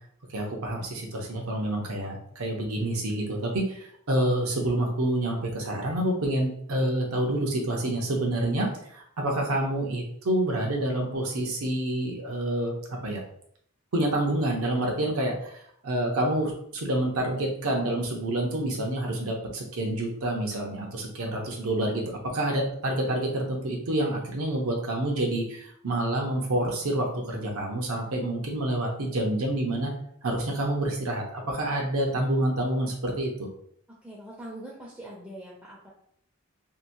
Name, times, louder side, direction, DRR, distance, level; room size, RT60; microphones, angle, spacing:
voice 1, 0.3-12.7 13.0-13.2 13.9-29.9 30.2-33.3, right 1 dB, 85° right, 0 dB, 0.7 m, -28 dB
voice 2, 34.0-35.9, right 1 dB, 5° right, -5 dB, 0.4 m, -42 dB
2.8 x 2.1 x 2.6 m, 0.66 s
head